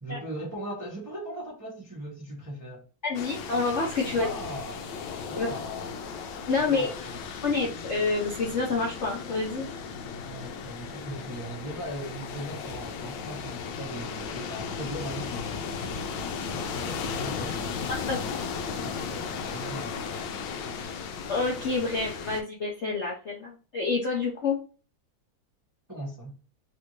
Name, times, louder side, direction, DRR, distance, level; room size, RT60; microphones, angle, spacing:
voice 1, 0.0-2.9 4.1-4.9 5.3-5.9 6.7-7.2 10.3-15.6 16.4-17.9 18.8-20.3 25.9-26.3, right 1 dB, 20° right, 0.6 m, -39 dB
voice 2, 3.0-4.3 5.4-5.5 6.5-6.9 7.4-9.7 17.9-18.2 21.3-24.6, left 4 dB, 60° left, 0.7 m, -28 dB
sound 1, 3.1-22.4, left 5 dB, 75° left, 1.2 m, -36 dB
3.3 x 2.6 x 3.0 m
omnidirectional pair, 2.1 m